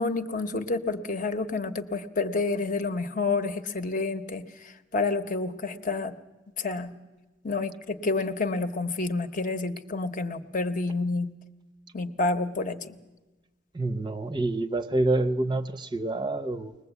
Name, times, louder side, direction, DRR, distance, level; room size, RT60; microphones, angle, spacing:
voice 1, 0.0-6.1 6.6-6.9 7.4-11.3 11.9-13.0, left 3 dB, 40° left, 8 dB, 0.9 m, -29 dB
voice 2, 13.7-16.8, right 2 dB, 20° right, 8 dB, 0.7 m, -27 dB
21.5 x 20.0 x 8.1 m, 1.1 s
head